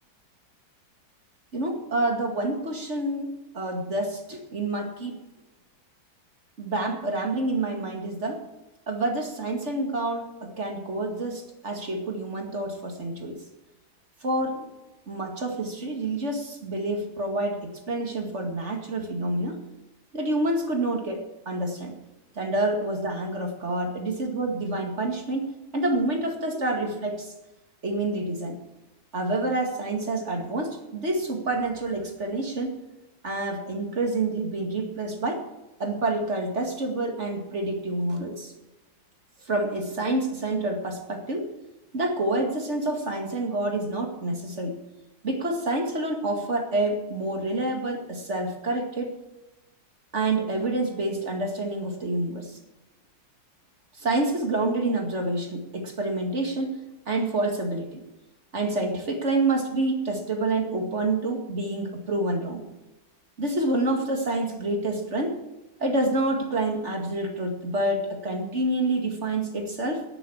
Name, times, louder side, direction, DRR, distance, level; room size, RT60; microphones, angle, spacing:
voice 1, 1.5-5.2 6.6-8.4 8.9-13.4 14.2-14.6 15.1-19.6 20.1-21.9 22.4-25.5 25.7-27.3 27.8-28.6 29.1-32.8 33.2-35.4 35.8-38.5 39.5-41.5 41.9-44.8 45.2-49.2 50.1-52.5 54.0-56.8 57.1-58.0 58.5-62.6 63.4-65.4 65.8-70.0, right 2 dB, 35° right, 3 dB, 2.3 m, -28 dB
11.5 x 10.5 x 8.6 m, 1.0 s
omnidirectional pair, 2.1 m